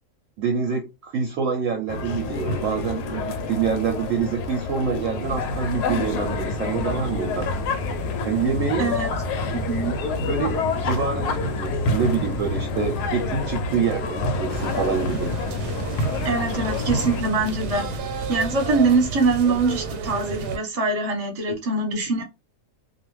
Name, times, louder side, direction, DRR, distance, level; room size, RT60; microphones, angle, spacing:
voice 1, 0.4-7.5 8.2-9.0 10.2-15.4 21.5-21.6, right 6 dB, 65° right, 0.8 m, -26 dB
sound 1, 1.9-17.2, left 3 dB, 90° left, 1.1 m, -28 dB
sound 2, 5.2-18.0, left 1 dB, 60° left, 0.8 m, -34 dB
voice 2, 8.8-9.1 9.5-9.9 16.2-17.8 18.3-22.2, right 3 dB, 30° right, 0.8 m, -23 dB
sound 3, 14.5-20.6, right 4 dB, 85° right, 1.1 m, -32 dB
2.4 x 2.4 x 3.0 m
omnidirectional pair, 1.7 m